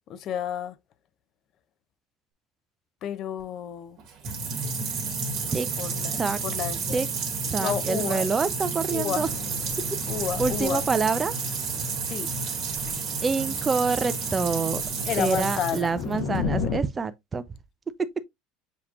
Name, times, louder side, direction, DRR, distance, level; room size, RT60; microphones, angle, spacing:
voice 1, 0.1-0.7 3.0-4.0 5.4-7.0 7.6-8.3 8.9-9.3 10.1-10.8 12.0-12.3 15.1-15.9, left 9 dB, 50° left, 0.5 m, -31 dB
sound 1, 4.0-16.4, right 4 dB, 50° right, 1.7 m, -30 dB
voice 2, 7.5-9.3 10.4-11.3 13.2-14.8 15.2-17.4, right 4 dB, 20° right, 0.5 m, -26 dB
sound 2, 9.2-16.8, left 6 dB, 65° left, 0.9 m, -36 dB
6.9 x 2.9 x 2.4 m
supercardioid pair, 120°, 0 cm